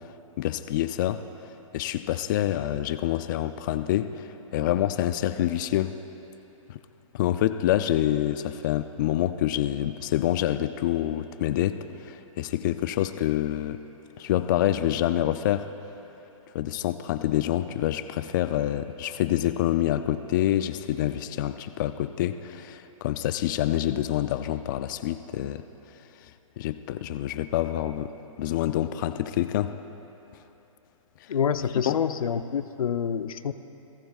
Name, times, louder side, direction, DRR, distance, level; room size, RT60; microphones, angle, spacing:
voice 1, 0.4-1.2 1.7-5.9 6.7-6.8 7.1-13.8 14.2-15.7 16.5-25.6 26.6-29.7 31.8-32.0, left 12 dB, 35° left, 11 dB, 0.4 m, -27 dB
voice 2, 31.3-33.5, left 7 dB, 85° left, 11 dB, 0.7 m, -27 dB
29.0 x 17.0 x 2.4 m, 3.0 s
hypercardioid pair, 150°, 18 cm